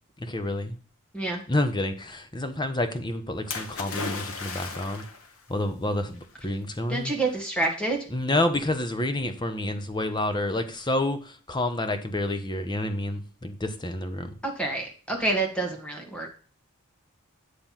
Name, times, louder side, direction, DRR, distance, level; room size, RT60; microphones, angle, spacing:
voice 1, 0.2-0.8 1.5-5.0 5.5-7.1 8.1-14.3, left 1 dB, 20° left, 8 dB, 0.9 m, -29 dB
Splash splatter, 3.5-5.3 6.2-6.3, left 4 dB, 65° left, 1.4 m, -35 dB
voice 2, 6.9-8.0 14.4-16.3, right 2 dB, 5° left, 1 dB, 1.5 m, -28 dB
9.0 x 3.4 x 5.7 m, 0.39 s
head